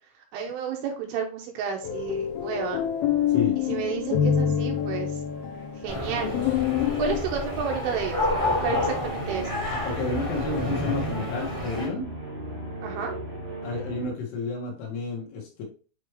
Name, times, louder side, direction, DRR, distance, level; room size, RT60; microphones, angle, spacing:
voice 1, 0.3-2.8 3.6-5.1 5.8-6.4 7.0-9.5 12.8-13.1, right 7 dB, 75° right, 2 dB, 3.3 m, -31 dB
sound 1, 1.8-7.2, left 9 dB, 90° left, 3.5 m, -26 dB
sound 2, 4.0-14.1, right 1 dB, 25° right, 1.2 m, -39 dB
sound 3, 5.9-11.9, left 2 dB, 15° left, 1.0 m, -29 dB
voice 2, 9.7-12.1 13.6-15.6, left 3 dB, 75° left, -1 dB, 4.1 m, -31 dB
9.3 x 3.2 x 3.3 m, 0.37 s
omnidirectional pair, 5.9 m